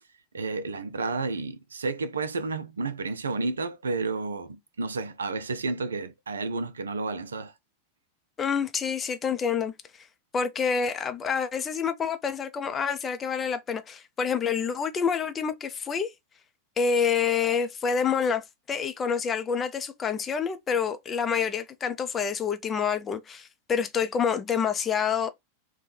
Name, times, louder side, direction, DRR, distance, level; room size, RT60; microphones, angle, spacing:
voice 1, 0.3-7.5, right 3 dB, 70° right, 0.4 m, -31 dB
voice 2, 8.4-9.7 10.3-16.1 16.8-25.3, left 6 dB, 20° left, 0.5 m, -27 dB
3.2 x 2.2 x 4.1 m
figure-of-eight pair, 90°, 0 cm